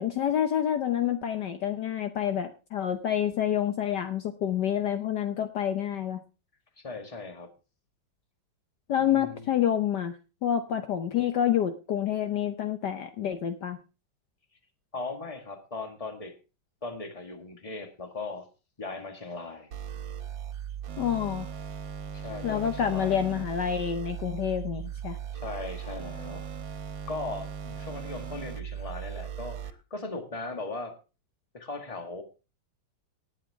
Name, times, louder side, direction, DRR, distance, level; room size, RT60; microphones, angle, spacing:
voice 1, 0.0-6.2 8.9-10.1 10.4-13.8 21.0-21.5 22.4-25.2, left 9 dB, 65° left, 8 dB, 1.4 m, -28 dB
voice 2, 6.8-7.5 9.0-9.5 14.9-16.3 16.8-18.5 18.8-19.7 22.1-23.2 25.3-26.5 27.1-31.0 31.5-32.2, left 3 dB, 20° left, 5 dB, 1.8 m, -38 dB
sound 1, 19.7-29.7, right 8 dB, 75° right, 1.9 m, -38 dB
19.0 x 8.5 x 3.5 m, 0.31 s
omnidirectional pair, 2.1 m